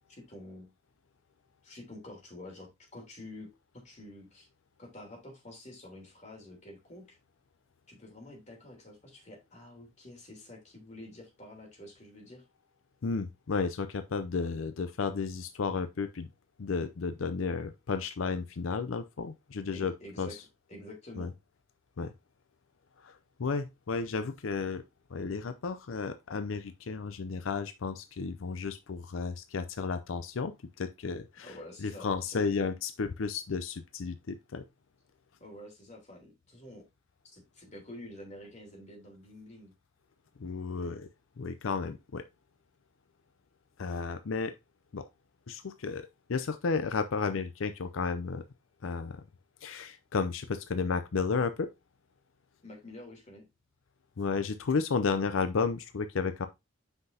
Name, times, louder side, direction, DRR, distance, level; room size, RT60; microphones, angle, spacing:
voice 1, 0.2-0.7 1.6-4.5 4.8-7.2 7.9-12.4 19.7-20.3 20.7-21.3 31.4-32.7 35.4-36.8 37.2-39.7 52.6-53.5, left 1 dB, 35° left, 3.2 m, -48 dB
voice 2, 13.0-16.3 16.6-19.9 20.2-20.4 21.2-21.3 22.0-22.1 23.0-24.8 25.1-31.5 31.8-34.6 40.4-41.1 41.4-42.2 43.8-44.5 44.9-45.1 45.5-48.4 48.8-49.2 49.6-51.7 54.2-56.5, left 4 dB, 85° left, 0.6 m, -33 dB
7.9 x 5.9 x 2.8 m
head